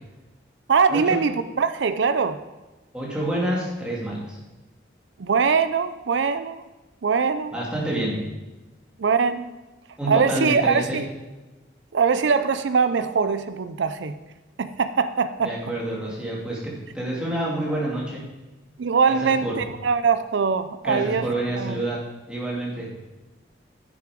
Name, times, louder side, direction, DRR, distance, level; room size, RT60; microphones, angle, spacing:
voice 1, 0.7-2.4 5.2-6.7 7.0-7.5 9.0-9.5 10.1-11.1 11.9-14.2 14.6-15.5 18.8-21.3 21.5-21.8, right 5 dB, 80° right, 11 dB, 0.5 m, -22 dB
voice 2, 2.9-4.4 7.5-8.2 10.0-11.0 15.4-18.2 19.1-19.5 20.8-22.0 22.3-22.9, right 1 dB, 5° right, -5 dB, 2.7 m, -28 dB
9.5 x 7.7 x 5.1 m, 1.1 s
head